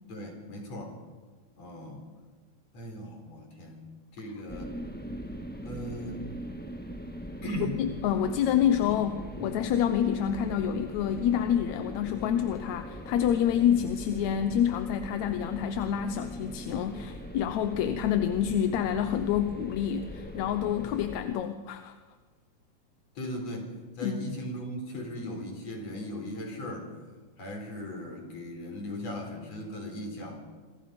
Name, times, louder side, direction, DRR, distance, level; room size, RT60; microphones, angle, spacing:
voice 1, 0.1-1.0 1.6-2.0 2.7-3.8 4.1-4.7 5.6-6.2 7.4-7.8 8.9-9.0 9.4-9.5 23.2-23.7 24.0-26.9 27.4-30.4, equal, 55° left, 3 dB, 5.4 m, -38 dB
sound 1, 4.5-21.2, equal, 5° left, 0.8 m, -41 dB
voice 2, 7.6-22.0 24.0-24.3, left 9 dB, 70° left, 8 dB, 2.1 m, -28 dB
27.0 x 24.5 x 5.3 m, 1.4 s
omnidirectional pair, 3.5 m